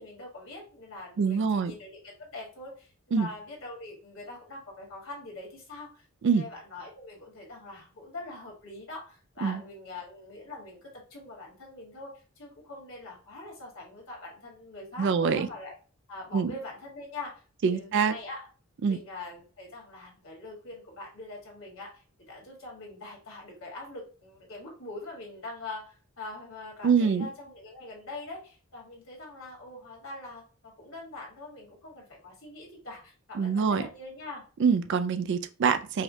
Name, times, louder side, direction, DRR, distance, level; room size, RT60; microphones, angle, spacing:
voice 1, 0.0-15.8 16.1-17.4 17.7-18.5 18.8-34.4, left 2 dB, 65° left, -1 dB, 1.6 m, -43 dB
voice 2, 1.2-1.7 3.1-3.3 6.2-6.5 9.4-9.6 15.0-15.5 16.3-16.5 17.6-18.1 18.8-19.0 26.8-27.3 33.4-33.8 34.6-36.0, right 6 dB, 55° right, 12 dB, 0.3 m, -25 dB
4.8 x 2.2 x 2.6 m, 0.38 s
head